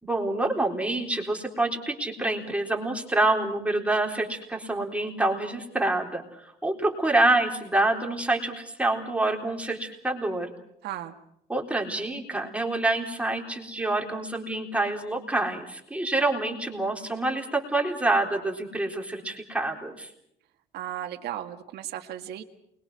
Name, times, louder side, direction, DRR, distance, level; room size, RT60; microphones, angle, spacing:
voice 1, 0.0-10.5 11.5-20.1, right 2 dB, 10° right, 1 dB, 3.9 m, -27 dB
voice 2, 10.8-11.1 20.7-22.4, right 12 dB, 75° right, 5 dB, 1.9 m, -35 dB
28.5 x 22.0 x 6.3 m, 0.77 s
cardioid pair, 110°, 17 cm